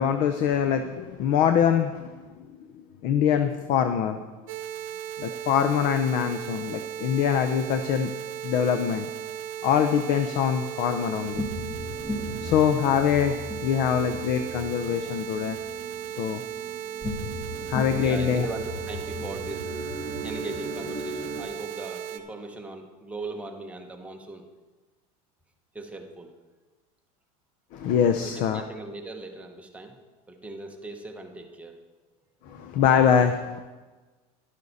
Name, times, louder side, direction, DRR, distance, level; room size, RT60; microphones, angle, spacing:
voice 1, 0.0-2.1 3.0-4.2 5.2-8.1 8.4-9.1 9.6-11.5 12.4-13.3 13.6-15.6 16.2-16.4 17.7-18.5 27.7-28.6 32.5-33.6, left 8 dB, 45° left, 8 dB, 0.7 m, -23 dB
sound 1, 4.5-22.2, right 10 dB, 55° right, 1.1 m, -36 dB
sound 2, 11.1-21.4, equal, 15° left, 2.0 m, -36 dB
voice 2, 18.0-19.7 20.2-24.4 25.7-26.3 28.2-30.0 30.3-31.8, right 2 dB, 5° right, 2 dB, 1.1 m, -39 dB
11.5 x 11.5 x 4.1 m, 1.3 s
supercardioid pair, 140°, 19 cm